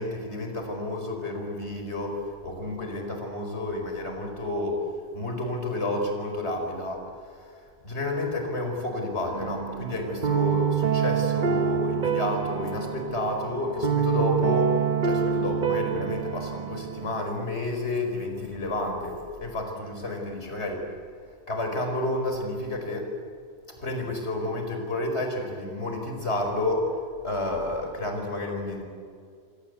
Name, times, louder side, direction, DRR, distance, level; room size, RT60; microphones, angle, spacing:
voice 1, 0.0-4.8 5.1-7.1 7.8-20.8 21.5-23.1 23.8-26.9 27.2-28.8, left 2 dB, 65° left, 3 dB, 5.4 m, -30 dB
sound 1, 9.3-17.2, right 7 dB, 45° right, 1.0 m, -27 dB
27.5 x 25.5 x 8.2 m, 2.2 s
omnidirectional pair, 1.2 m